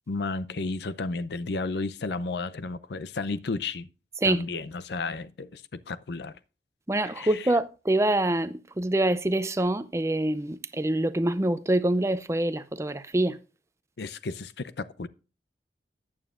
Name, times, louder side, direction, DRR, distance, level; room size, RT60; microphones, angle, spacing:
voice 1, 0.1-3.9 4.2-6.3 7.0-7.5 14.0-15.1, left 3 dB, 70° left, 0.5 m, -33 dB
voice 2, 6.9-13.4, right 1 dB, 15° right, 0.5 m, -25 dB
14.0 x 8.9 x 2.5 m
head